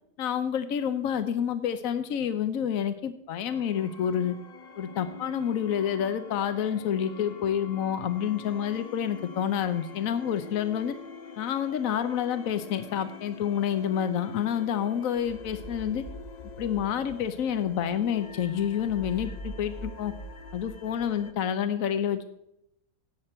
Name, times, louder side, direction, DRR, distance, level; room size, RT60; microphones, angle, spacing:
voice 1, 0.2-4.3 4.8-10.9 11.4-16.0 16.6-20.1 20.5-22.3, left 9 dB, 70° left, 10 dB, 1.2 m, -28 dB
sound 1, 3.5-21.3, left 3 dB, 35° left, 0.8 m, -44 dB
15.0 x 9.5 x 4.4 m, 0.80 s
omnidirectional pair, 1.5 m